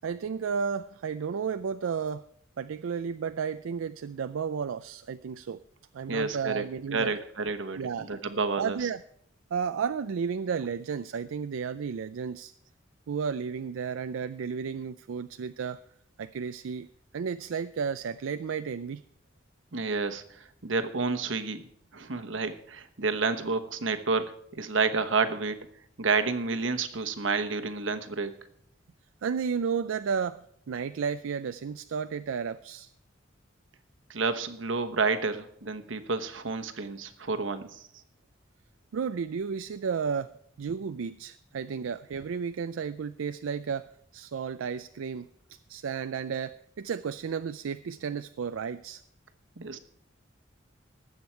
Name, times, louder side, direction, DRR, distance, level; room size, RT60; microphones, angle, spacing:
voice 1, 0.0-2.3 2.6-5.6 5.9-7.1 7.8-8.1 8.6-9.0 9.5-12.5 13.1-15.8 16.2-16.9 17.1-19.0 29.2-32.9 38.9-40.3 40.6-49.0, right 6 dB, 85° right, 11 dB, 0.4 m, -33 dB
voice 2, 6.1-6.6 6.9-8.9 19.7-21.7 21.9-25.6 26.0-28.3 34.1-37.8 49.6-49.8, right 4 dB, 70° right, 8 dB, 1.1 m, -30 dB
20.0 x 8.0 x 4.5 m, 0.70 s
head